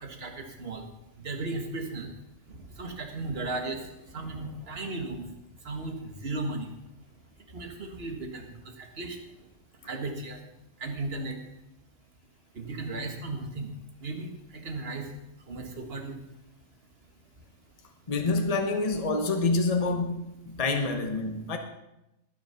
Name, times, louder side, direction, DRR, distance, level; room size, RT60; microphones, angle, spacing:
voice 1, 0.0-0.8 1.2-2.1 2.5-3.8 4.1-5.2 5.6-6.7 7.5-9.2 9.9-10.4 10.8-11.4 12.6-13.7 14.0-15.1 15.5-16.2, right 2 dB, 45° right, 2.0 m, -35 dB
voice 2, 18.1-21.6, left 3 dB, 30° left, 1.1 m, -27 dB
19.5 x 6.7 x 5.8 m
omnidirectional pair, 1.4 m